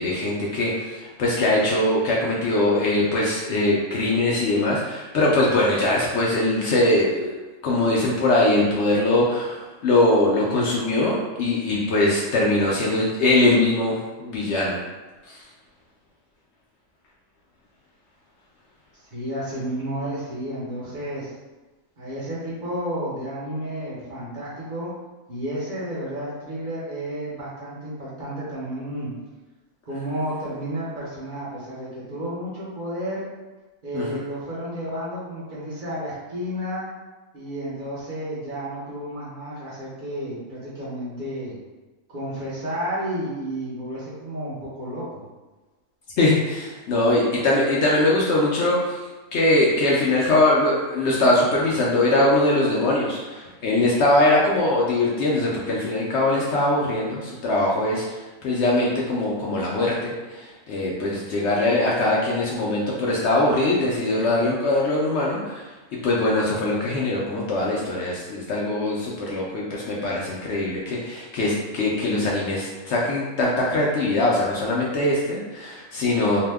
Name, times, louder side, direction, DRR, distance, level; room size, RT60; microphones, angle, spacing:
voice 1, 0.0-7.3 7.6-14.8 15.3-15.4 33.9-34.2 46.2-49.0 49.3-65.6 66.0-76.4, left 2 dB, 65° left, -4 dB, 0.7 m, -22 dB
voice 2, 19.1-21.3 22.0-24.9 25.3-29.1 29.9-33.3 33.8-36.8 37.3-41.6 42.1-45.2, equal, 45° right, -9 dB, 0.9 m, -31 dB
2.7 x 2.1 x 3.3 m, 1.2 s
omnidirectional pair, 1.4 m